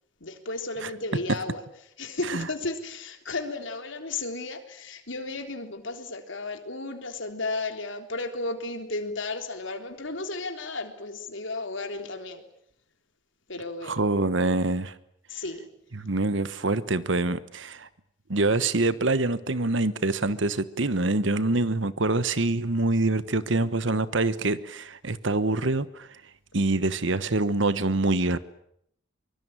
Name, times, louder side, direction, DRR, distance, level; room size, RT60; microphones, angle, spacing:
voice 1, 0.2-1.6 2.0-12.4 13.5-14.0 15.3-15.6, left 2 dB, 70° left, 3.6 m, -34 dB
voice 2, 13.8-14.9 15.9-17.9 18.3-26.2 26.5-28.4, right 2 dB, 65° right, 1.2 m, -25 dB
24.0 x 24.0 x 8.9 m
head